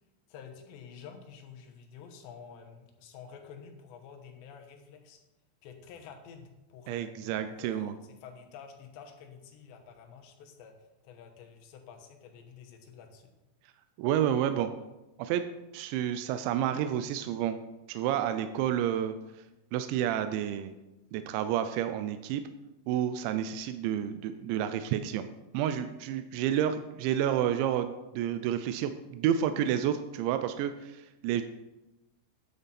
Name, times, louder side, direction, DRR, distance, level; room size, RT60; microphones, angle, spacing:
voice 1, 0.3-5.2 5.6-10.7 11.0-13.3, left 6 dB, 75° left, 3 dB, 3.2 m, -49 dB
voice 2, 6.9-7.9 14.0-14.7 15.2-15.4 15.7-17.6 17.9-19.4 19.7-20.7 21.1-22.4 22.9-25.3 25.5-31.4, right 10 dB, 85° right, 9 dB, 2.8 m, -30 dB
9.6 x 8.7 x 4.1 m, 1.0 s
omnidirectional pair, 5.3 m